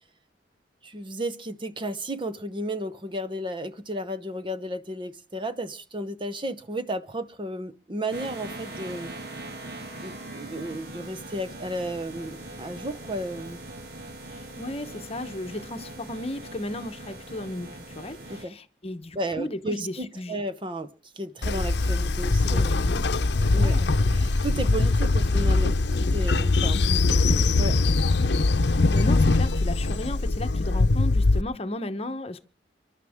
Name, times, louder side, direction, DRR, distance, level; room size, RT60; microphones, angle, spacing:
voice 1, 0.8-9.2 10.0-13.6 18.3-18.5 19.1-22.8 23.5-23.8 24.1-26.8 27.4-27.8, right 1 dB, 30° right, 0.8 m, -33 dB
sound 1, 8.1-18.4, right 2 dB, 60° right, 2.1 m, -41 dB
voice 2, 14.2-20.4 22.3-23.9 26.7-26.9 28.7-32.4, left 1 dB, 35° left, 1.0 m, -35 dB
Train, 21.4-31.4, left 3 dB, 75° left, 0.7 m, -22 dB
30.0 x 12.0 x 3.6 m
head